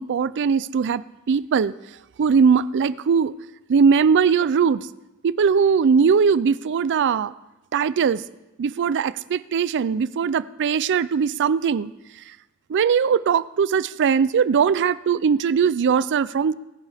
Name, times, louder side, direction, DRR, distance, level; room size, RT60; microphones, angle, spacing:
voice 1, 0.0-1.7 2.2-3.3 3.7-4.9 5.2-7.3 7.7-8.2 8.6-11.9 12.7-16.5, right 6 dB, 55° right, 19 dB, 0.4 m, -20 dB
21.0 x 10.0 x 3.5 m, 0.99 s
head